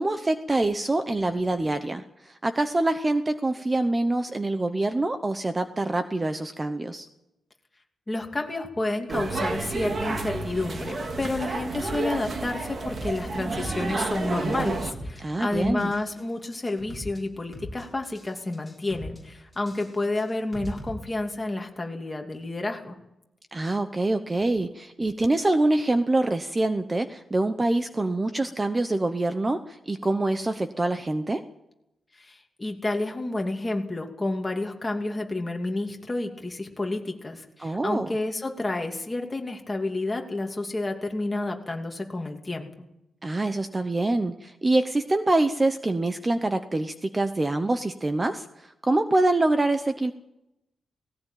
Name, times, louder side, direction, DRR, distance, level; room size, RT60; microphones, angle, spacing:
voice 1, 0.0-7.1 15.2-15.9 23.5-31.4 37.6-38.1 43.2-50.1, right 2 dB, 20° right, 9 dB, 0.9 m, -25 dB
voice 2, 8.1-23.0 32.2-42.7, left 2 dB, 15° left, 2 dB, 2.6 m, -30 dB
sound 1, 9.1-14.9, right 3 dB, 40° right, 2.4 m, -30 dB
sound 2, 12.9-13.2 13.5-14.3 14.5-15.2 15.5-16.2 16.5-17.2 17.5-18.3 18.5-19.2 19.5-20.9, equal, ahead, 7.0 m, -39 dB
18.5 x 17.5 x 9.0 m, 0.88 s
wide cardioid pair, 145°, 0 cm